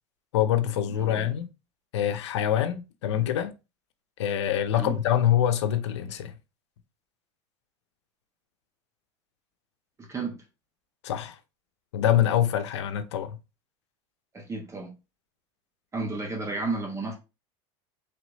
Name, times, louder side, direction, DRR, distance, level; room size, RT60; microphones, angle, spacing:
voice 1, 0.3-1.5 1.9-3.5 4.2-6.3 11.0-11.4 11.9-13.4, left 10 dB, 90° left, 0.6 m, -25 dB
voice 2, 0.9-1.3 4.7-5.0 10.0-10.4 14.3-14.9 15.9-17.1, right 3 dB, 20° right, 1.2 m, -32 dB
3.5 x 3.1 x 3.9 m
supercardioid pair, 115°, 14 cm